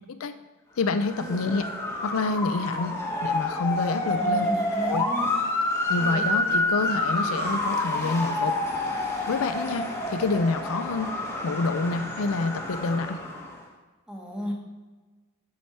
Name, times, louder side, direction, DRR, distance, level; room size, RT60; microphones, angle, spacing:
voice 1, 0.8-1.6 2.0-3.0 3.2-4.5 4.8-5.0 5.9-8.6 9.3-11.1 11.4-13.2, left 3 dB, 85° left, 10 dB, 0.5 m, -27 dB
Motor vehicle (road) / Siren, 0.9-13.6, left 2 dB, 10° left, 1.0 m, -28 dB
voice 2, 4.2-5.3 6.0-6.3 14.1-14.5, equal, 5° right, -1 dB, 1.3 m, -34 dB
7.7 x 7.0 x 4.2 m, 1.3 s
head